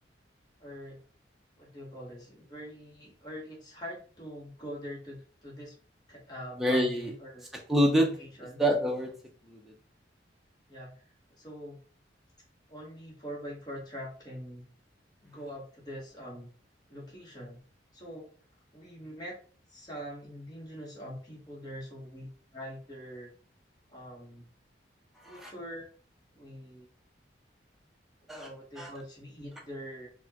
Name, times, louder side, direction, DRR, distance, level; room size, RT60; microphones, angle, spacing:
voice 1, 0.6-1.0 1.6-5.7 6.1-7.5 8.2-8.6 10.7-11.0 11.3-11.8 12.7-14.7 15.2-16.5 16.9-17.6 17.9-18.3 18.7-19.4 19.7-23.3 23.9-24.5 25.2-25.9 26.3-26.9 28.3-30.1, equal, 20° left, -4 dB, 1.1 m, -43 dB
voice 2, 6.6-7.1 7.7-8.2 8.6-9.2 9.5-9.6 25.3-25.5 28.3-28.5 28.8-28.9, equal, ahead, -1 dB, 0.6 m, -26 dB
4.1 x 2.3 x 2.8 m, 0.41 s
head